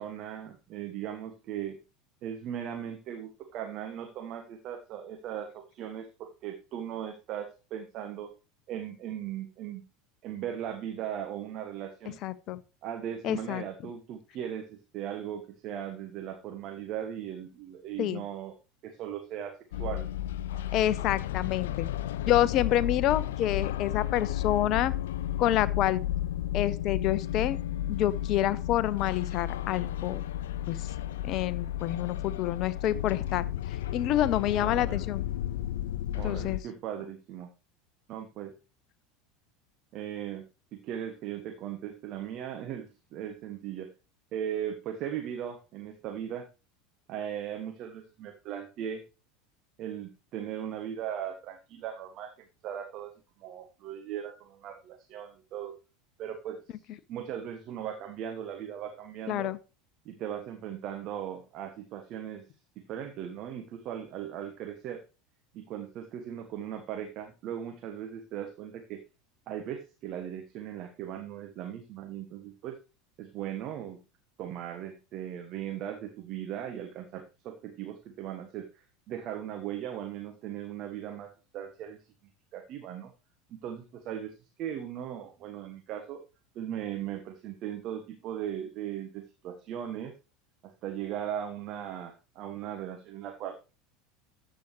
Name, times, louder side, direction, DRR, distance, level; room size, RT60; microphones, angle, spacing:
voice 1, 0.0-1.8 2.2-8.3 8.7-9.8 10.2-12.2 12.8-18.5 18.8-20.0 34.6-35.0 36.1-37.5 38.1-38.5 39.9-40.4 40.7-43.9 44.3-46.5 47.1-49.0 49.8-53.1 53.4-55.7 56.2-59.5 60.0-62.4 62.8-65.0 65.5-69.0 69.5-72.8 73.2-74.0 74.4-78.7 79.1-82.0 82.5-83.1 83.5-84.3 84.6-86.2 86.5-90.1 90.6-93.6, right 10 dB, 45° right, 1.3 m, -38 dB
voice 2, 12.2-12.6 13.2-13.6 18.0-18.2 20.7-21.9 22.3-24.9 25.4-26.0 26.5-27.6 27.9-30.2 30.7-30.9 31.2-33.5 33.9-35.3 36.2-36.6 59.3-59.6, left 12 dB, 45° left, 0.8 m, -28 dB
sound 1, 19.7-36.6, left 12 dB, 65° left, 0.4 m, -33 dB
13.5 x 7.9 x 3.2 m
figure-of-eight pair, 75°, 0 cm